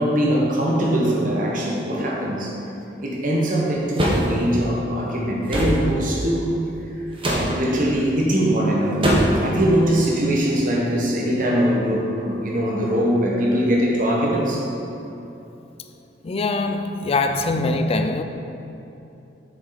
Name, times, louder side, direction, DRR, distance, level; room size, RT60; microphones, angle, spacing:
voice 1, 0.0-2.5 3.0-6.5 7.2-9.0 9.3-14.6, equal, 50° right, 1.4 m, -21 dB
sound 1, 4.0-4.3 5.5-5.8 7.2-7.5 9.0-9.4, equal, 30° right, 1.2 m, -20 dB
voice 2, 16.2-18.2, left 3 dB, 35° left, 0.4 m, -23 dB
7.5 x 6.3 x 4.1 m
head